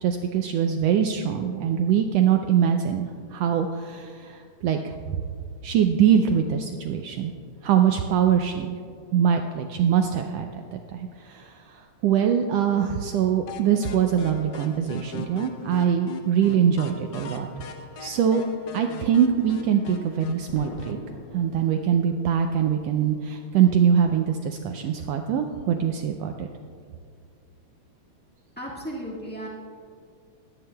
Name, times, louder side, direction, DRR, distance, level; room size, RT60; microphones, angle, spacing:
voice 1, 0.0-5.2 5.6-7.3 7.6-8.7 9.1-17.5 18.0-18.4 18.7-21.0 21.3-26.5, right 8 dB, 85° right, 5 dB, 1.4 m, -23 dB
sound 1, 13.5-21.0, left 4 dB, 70° left, 1.6 m, -40 dB
Explosion, 20.5-23.2, left 5 dB, 85° left, 1.2 m, -44 dB
voice 2, 28.6-29.5, equal, 15° left, -5 dB, 0.3 m, -34 dB
17.0 x 12.0 x 2.3 m, 2.2 s
omnidirectional pair, 3.4 m